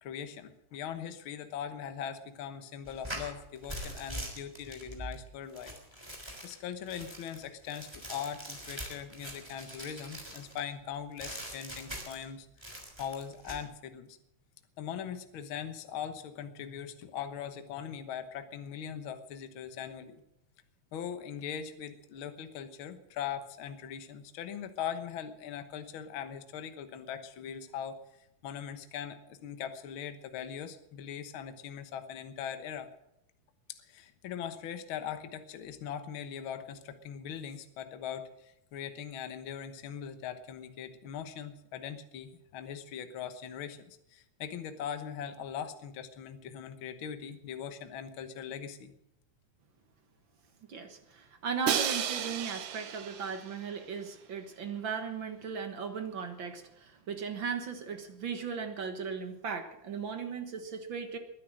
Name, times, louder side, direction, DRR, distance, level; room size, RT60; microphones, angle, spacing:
voice 1, 0.0-5.7 6.1-12.5 13.0-14.2 14.8-20.2 20.9-28.0 28.4-32.9 33.7-48.9, left 8 dB, 55° left, 9 dB, 1.6 m, -41 dB
sound 1, 2.9-10.6 11.2-12.3 12.6-13.6, right 1 dB, 10° right, 3.3 m, -43 dB
voice 2, 50.7-61.2, right 6 dB, 50° right, 7 dB, 1.6 m, -37 dB
Crash cymbal, 51.7-53.7, right 9 dB, 90° right, 2.8 m, -33 dB
21.5 x 9.7 x 6.4 m, 0.82 s
omnidirectional pair, 3.6 m